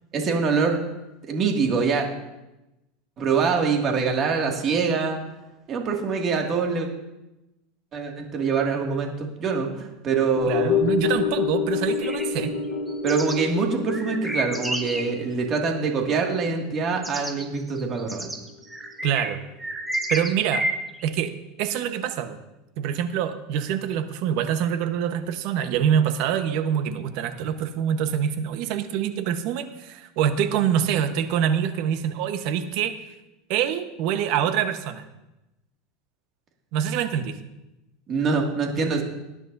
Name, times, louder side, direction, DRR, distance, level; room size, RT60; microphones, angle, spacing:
voice 1, 0.1-0.8 1.2-2.1 3.2-5.2 5.7-6.9 7.9-10.9 13.0-18.3 38.1-39.0, right 5 dB, 35° right, 1 dB, 2.2 m, -24 dB
sound 1, 10.4-18.8 19.1-19.2, left 6 dB, 55° left, 1.2 m, -29 dB
voice 2, 10.5-12.5 19.0-19.4 20.1-20.7 21.0-21.3 21.6-22.4 22.8-33.0 33.5-35.0 36.7-37.4, right 9 dB, 60° right, 8 dB, 1.2 m, -25 dB
sound 2, 11.9-13.4 13.9-15.1 16.7-16.8 17.0-21.0, right 1 dB, 5° right, 1.2 m, -30 dB
19.0 x 10.5 x 2.7 m, 0.96 s
supercardioid pair, 135°, 0 cm